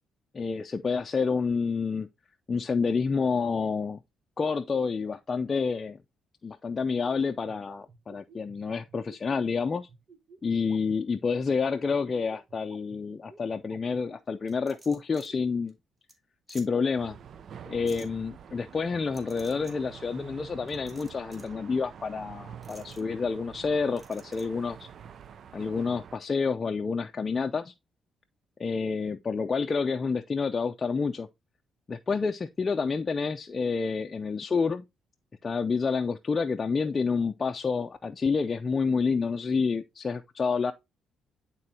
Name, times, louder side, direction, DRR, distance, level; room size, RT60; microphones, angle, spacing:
voice 1, 0.3-2.1 2.5-4.0 4.4-6.0 6.4-9.9 10.4-15.7 16.5-17.2 17.7-24.9 25.5-27.7 28.6-31.3 31.9-34.8 35.4-40.7, left 5 dB, 35° left, 0.5 m, -29 dB
sound 1, 6.9-15.4, right 4 dB, 35° right, 1.1 m, -53 dB
sound 2, 14.5-15.3 15.7-15.8 16.1-16.2 16.5-16.7 17.9-18.1 19.1-19.7 20.7-21.5 22.6-23.0 24.0-24.4, right 1 dB, 15° right, 2.5 m, -51 dB
sound 3, 17.0-26.2, right 8 dB, 60° right, 0.5 m, -47 dB
10.5 x 3.8 x 2.7 m
cardioid pair, 90°, 0 cm